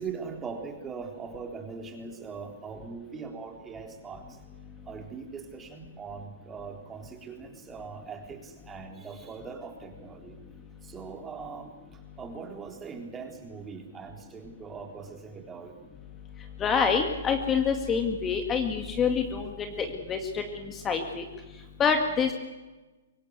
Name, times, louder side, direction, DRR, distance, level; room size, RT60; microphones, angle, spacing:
voice 1, 0.0-4.2 4.9-10.4 10.8-11.7 12.2-15.7, right 5 dB, 15° right, 3 dB, 3.7 m, -41 dB
voice 2, 16.6-20.4 20.7-21.2 21.8-22.3, left 6 dB, 20° left, 5 dB, 2.1 m, -26 dB
24.0 x 18.0 x 8.1 m, 1.2 s
hypercardioid pair, 130°, 0 cm